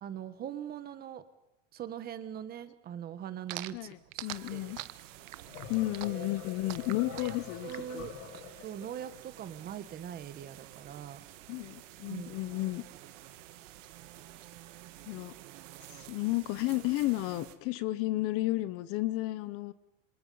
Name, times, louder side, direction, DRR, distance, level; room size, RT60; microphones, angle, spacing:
voice 1, 0.0-1.2 1.7-4.7 6.1-6.3 7.0-7.4 7.6-8.1 8.6-11.2 12.1-12.4 14.9-15.2, right 9 dB, 25° right, 12 dB, 1.2 m, -42 dB
sound 1, 3.5-8.4, right 16 dB, 85° right, 1.1 m, -43 dB
voice 2, 3.7-4.8 5.7-8.1 11.5-12.8 15.1-15.3 15.9-19.7, left 18 dB, 35° left, 15 dB, 0.8 m, -33 dB
sound 2, 4.2-17.6, right 14 dB, 70° right, 2.2 m, -51 dB
sound 3, 5.3-9.1, left 8 dB, 65° left, 5.6 m, -46 dB
27.0 x 26.5 x 5.5 m, 0.89 s
supercardioid pair, 160°, 38 cm